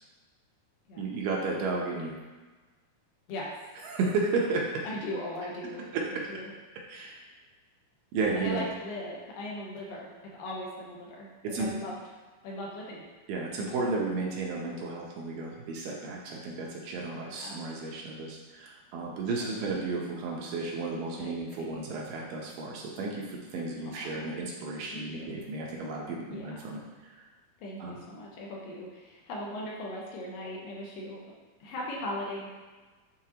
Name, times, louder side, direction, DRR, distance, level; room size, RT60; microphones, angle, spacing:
voice 1, 1.0-2.2 3.8-4.8 5.8-6.3 6.9-7.2 8.1-8.6 11.4-11.7 13.3-27.2 27.8-28.0, right 3 dB, 75° right, -2 dB, 2.3 m, -33 dB
voice 2, 4.8-5.8 6.1-6.5 8.4-10.1 10.4-11.9 12.4-13.0 17.2-17.6 19.4-19.7 21.2-21.7 23.8-24.1 24.9-25.3 26.3-26.5 27.6-31.2 31.6-32.5, left 1 dB, 75° left, -3 dB, 2.5 m, -39 dB
9.4 x 3.9 x 2.9 m, 1.3 s
omnidirectional pair, 4.3 m